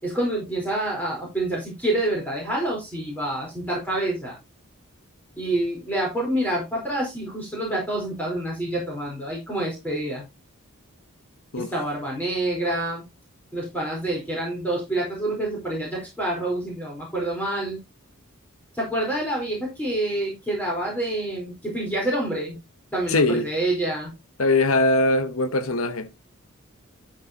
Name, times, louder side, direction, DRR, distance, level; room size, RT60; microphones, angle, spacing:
voice 1, 0.0-4.4 5.4-10.2 11.6-13.0 13.5-17.8 18.7-22.6 22.9-24.1, right 1 dB, 5° left, 4.4 m, -27 dB
voice 2, 23.1-23.5 24.4-26.1, left 2 dB, 75° left, 1.2 m, -21 dB
13.0 x 6.6 x 3.0 m
head